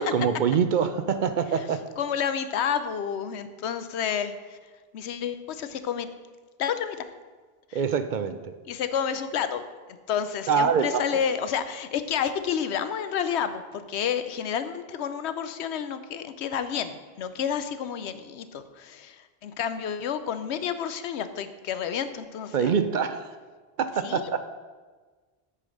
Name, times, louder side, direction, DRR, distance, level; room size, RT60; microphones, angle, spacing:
voice 1, 0.0-1.8 7.7-8.5 10.5-11.2 22.5-23.3 23.8-24.4, right 6 dB, 60° right, 10 dB, 0.6 m, -25 dB
voice 2, 2.0-4.6 4.9-6.1 6.6-7.0 7.7-7.8 8.7-9.6 10.1-22.7 24.0-24.4, left 8 dB, 90° left, 11 dB, 0.9 m, -30 dB
8.5 x 5.1 x 6.3 m, 1.4 s
omnidirectional pair, 1.1 m